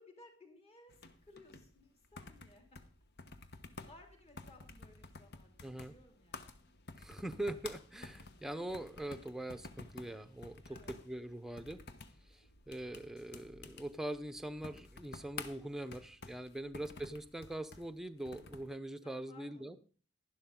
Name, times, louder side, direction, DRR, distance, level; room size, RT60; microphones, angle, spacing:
voice 1, 0.0-2.8 3.9-6.6 10.7-11.0 19.0-19.8, left 2 dB, 30° left, 4 dB, 2.7 m, -60 dB
sound 1, 0.9-18.7, left 3 dB, 55° left, 1.1 m, -52 dB
voice 2, 5.6-5.9 7.0-11.8 12.3-19.8, right 1 dB, ahead, 10 dB, 0.8 m, -43 dB
11.5 x 11.5 x 3.8 m, 0.40 s
head